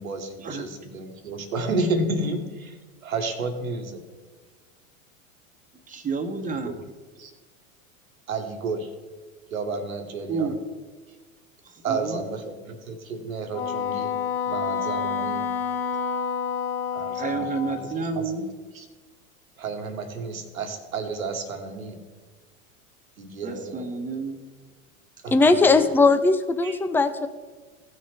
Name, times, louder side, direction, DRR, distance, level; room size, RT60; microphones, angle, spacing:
voice 1, 0.0-2.8 3.0-4.0 6.6-6.8 7.2-7.3 8.3-8.9 9.5-10.5 11.8-14.2 14.5-15.5 16.9-17.7 18.1-18.2 18.7-18.8 19.6-22.0 23.2-23.9 25.2-25.8 26.6-26.8, right 3 dB, 85° right, 6 dB, 1.6 m, -31 dB
voice 2, 5.9-6.8 10.3-10.6 11.6-12.2 17.2-18.5 23.4-24.4, right 4 dB, 20° right, 5 dB, 1.4 m, -30 dB
Wind instrument woodwind instrument, 13.5-18.0, left 6 dB, 45° left, 1.4 m, -28 dB
voice 3, 25.3-27.3, left 3 dB, 5° left, 9 dB, 0.5 m, -19 dB
16.5 x 6.4 x 3.5 m, 1.4 s
hypercardioid pair, 90°, 41 cm